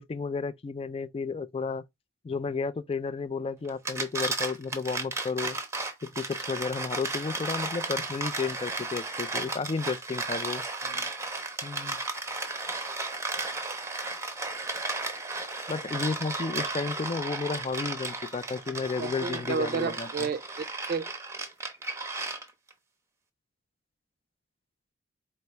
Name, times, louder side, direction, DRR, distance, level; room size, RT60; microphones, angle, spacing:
voice 1, 0.0-1.8 2.2-5.6 6.0-10.6 11.6-12.0 15.7-20.3, left 4 dB, 30° left, 0.3 m, -32 dB
sound 1, 3.7-22.7, right 3 dB, 15° right, 0.7 m, -34 dB
voice 2, 19.0-21.1, right 5 dB, 50° right, 0.4 m, -32 dB
4.3 x 2.9 x 3.2 m
head